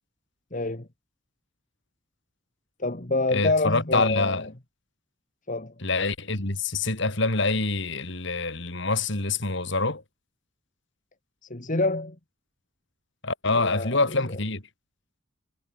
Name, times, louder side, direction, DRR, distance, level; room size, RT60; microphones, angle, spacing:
voice 1, 0.5-0.9 2.8-4.5 5.5-5.7 11.5-12.2 13.5-14.4, left 2 dB, 40° left, 1.9 m, -27 dB
voice 2, 3.3-4.5 5.8-10.0 13.2-14.6, left 3 dB, 60° left, 3.8 m, -26 dB
head